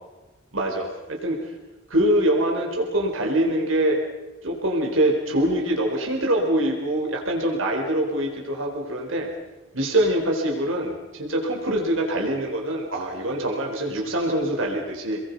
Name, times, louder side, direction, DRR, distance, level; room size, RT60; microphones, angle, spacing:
voice 1, 0.5-1.5 1.9-4.0 4.4-9.3 9.7-15.2, right 1 dB, 85° right, 1 dB, 4.3 m, -24 dB
29.0 x 21.5 x 5.5 m, 1.1 s
head